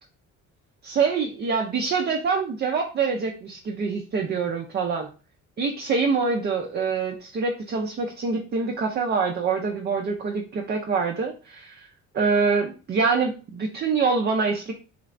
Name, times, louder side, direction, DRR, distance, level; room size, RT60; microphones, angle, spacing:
voice 1, 0.8-5.1 5.6-11.9 12.1-14.7, right 5 dB, 35° right, 1 dB, 0.4 m, -25 dB
3.2 x 3.1 x 2.5 m, 0.36 s
cardioid pair, 145°, 31 cm